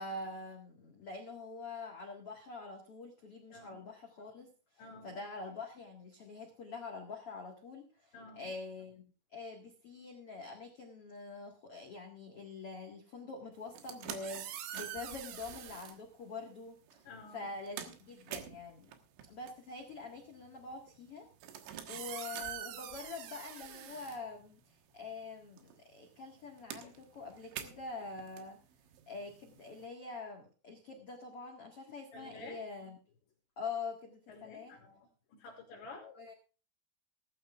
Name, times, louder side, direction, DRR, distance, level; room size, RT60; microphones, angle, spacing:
voice 1, 0.0-4.5 5.0-17.0 17.3-18.9 19.2-21.3 21.9-28.6 29.1-33.0 33.6-34.7 36.0-36.3, left 3 dB, 80° left, 2 dB, 1.3 m, -45 dB
voice 2, 4.8-5.2 8.1-8.5 17.0-17.5 26.8-26.9 32.1-32.7 34.3-36.2, left 3 dB, 65° left, -1 dB, 4.5 m, -51 dB
sound 1, 13.6-16.0 16.9-17.1 17.4-24.9 25.2-29.8, right 10 dB, 70° right, 3.5 m, -46 dB
19.0 x 14.0 x 2.4 m, 0.35 s
omnidirectional pair, 5.8 m